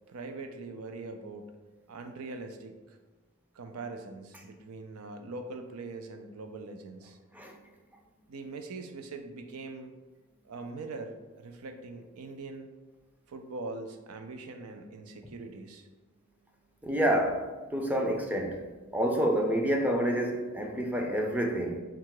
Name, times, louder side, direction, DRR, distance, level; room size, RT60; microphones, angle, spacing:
voice 1, 0.1-1.6 1.9-3.0 3.5-7.2 8.3-9.9 10.4-12.7 13.3-15.9, right 3 dB, 85° right, 6 dB, 0.5 m, -42 dB
voice 2, 16.8-17.4 17.7-18.6 18.9-21.8, right 1 dB, 5° right, 2 dB, 0.4 m, -28 dB
3.7 x 2.4 x 4.6 m, 1.2 s
head